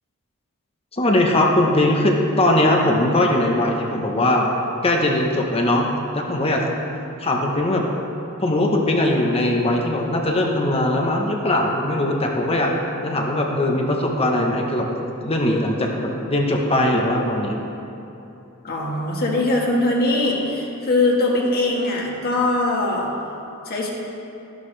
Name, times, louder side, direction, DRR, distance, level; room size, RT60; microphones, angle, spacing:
voice 1, 0.9-4.5 4.8-6.6 7.2-7.8 8.4-12.7 13.0-14.9 15.2-17.6, left 1 dB, 25° left, 0 dB, 1.0 m, -20 dB
voice 2, 18.6-23.1 23.6-23.9, left 2 dB, 45° left, -2 dB, 1.6 m, -21 dB
13.0 x 11.5 x 3.3 m, 2.9 s
head